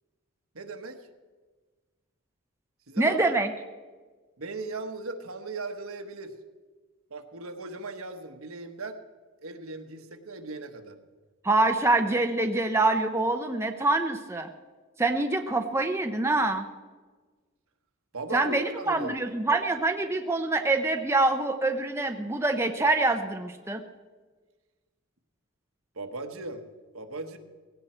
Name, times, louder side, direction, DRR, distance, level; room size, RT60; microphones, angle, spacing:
voice 1, 0.5-1.1 2.9-3.2 4.4-6.3 7.1-9.0 9.4-11.0 18.1-19.2 25.9-26.6 26.9-27.4, right 3 dB, 70° right, 6 dB, 1.2 m, -38 dB
voice 2, 3.0-3.5 11.4-14.5 15.0-16.7 18.3-23.8, right 2 dB, 10° right, 5 dB, 0.6 m, -25 dB
18.0 x 16.5 x 4.4 m, 1.4 s
head